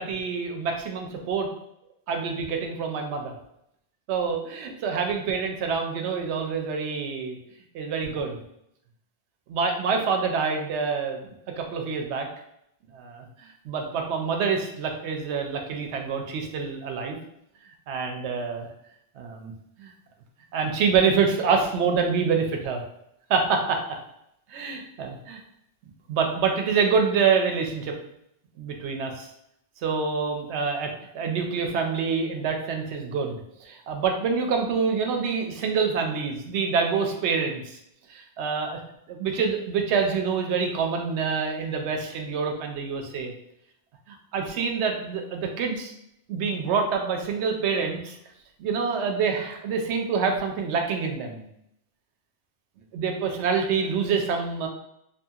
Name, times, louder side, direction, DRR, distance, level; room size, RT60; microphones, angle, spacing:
voice 1, 0.0-1.5 2.1-3.3 4.1-7.4 7.7-8.4 9.5-12.3 12.9-17.2 17.9-18.7 19.2-19.5 19.8-19.9 20.5-22.8 23.3-23.8 24.5-25.4 26.1-27.9 28.6-29.3 29.8-37.8 38.1-38.8 39.1-43.3 44.1-45.9 46.3-48.2 48.6-51.5 52.9-54.7, right 5 dB, 80° right, 3 dB, 0.8 m, -26 dB
2.7 x 2.7 x 2.3 m, 0.78 s
omnidirectional pair, 1.1 m